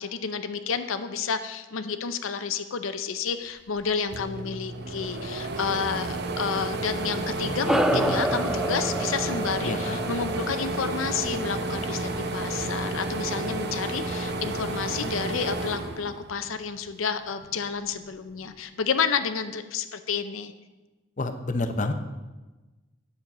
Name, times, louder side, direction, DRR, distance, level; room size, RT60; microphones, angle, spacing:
voice 1, 0.0-20.5, left 6 dB, 80° left, 10 dB, 0.6 m, -30 dB
sound 1, 3.8-3.9 4.1-16.7 17.2-18.3, right 2 dB, 50° right, 0.8 m, -31 dB
sound 2, 7.7-12.4, right 1 dB, ahead, 0.4 m, -29 dB
voice 2, 9.6-10.0 21.2-21.9, left 2 dB, 40° left, 7 dB, 0.7 m, -29 dB
9.5 x 7.1 x 6.0 m, 1.2 s
head